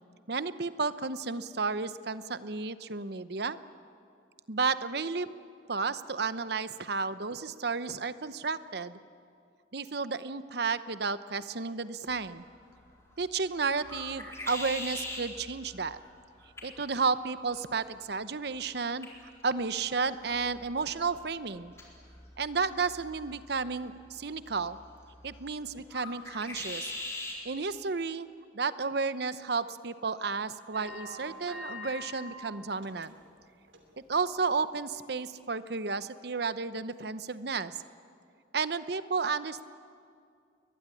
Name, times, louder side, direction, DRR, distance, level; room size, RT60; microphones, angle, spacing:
voice 1, 0.3-3.6 4.5-5.3 5.7-9.0 9.7-12.4 13.2-16.0 16.6-19.1 19.4-21.7 22.4-24.8 25.2-26.9 27.4-28.3 28.5-33.1 34.1-37.8 38.5-39.6, right 4 dB, 60° right, 14 dB, 0.8 m, -32 dB
sound 1, 12.1-27.4, left 2 dB, 15° left, 4.1 m, -45 dB
sound 2, 30.7-32.3 32.7-33.3 33.7-33.9 34.4-34.5, left 1 dB, 85° right, 3.0 m, -43 dB
22.5 x 20.0 x 9.8 m, 2.3 s
head